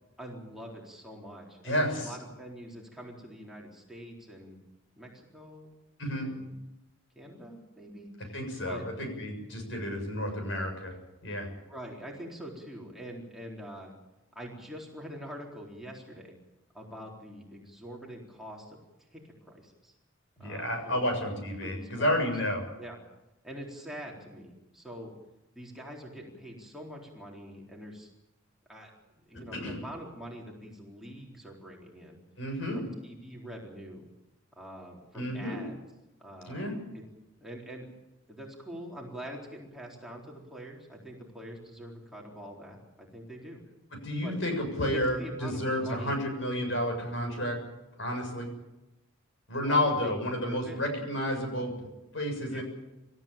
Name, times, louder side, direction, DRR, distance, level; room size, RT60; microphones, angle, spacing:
voice 1, 0.2-4.6 5.0-5.7 6.1-6.5 7.2-8.1 8.6-8.8 11.7-13.9 14.3-16.4 16.7-19.9 20.4-21.1 21.6-22.1 22.8-23.0 23.4-25.1 25.6-28.1 28.7-28.9 29.3-32.2 32.7-34.0 34.6-35.8 36.2-37.0 37.4-37.9 38.3-43.6 44.2-44.4 44.9-46.2 49.6-50.1 50.4-50.8 52.5-52.6, equal, ahead, -2 dB, 4.1 m, -44 dB
voice 2, 1.6-2.1 6.0-6.3 8.3-11.0 11.2-11.5 20.4-22.6 29.5-29.7 32.4-32.8 35.1-35.6 36.5-36.8 43.9-47.6 48.0-48.5 49.5-51.7 52.1-52.6, left 1 dB, 65° left, 4 dB, 7.3 m, -31 dB
27.0 x 14.5 x 9.0 m, 0.98 s
head